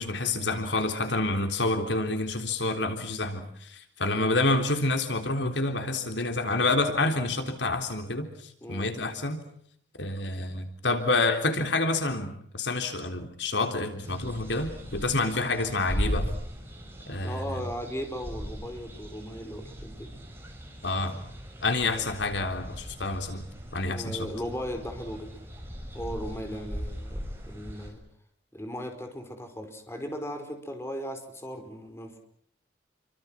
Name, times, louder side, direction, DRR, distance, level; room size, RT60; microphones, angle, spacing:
voice 1, 0.0-9.4 10.0-16.3 17.1-17.6 20.8-21.2 21.6-23.4 23.7-24.3, left 2 dB, 80° left, 7 dB, 3.7 m, -28 dB
voice 2, 8.6-8.9 15.2-15.5 17.2-20.1 21.9-22.1 23.8-25.3 25.9-28.0 28.5-32.2, equal, 15° left, 5 dB, 5.3 m, -37 dB
sound 1, 14.0-27.9, equal, 15° right, 7.3 m, -38 dB
29.5 x 25.0 x 6.0 m, 0.65 s
head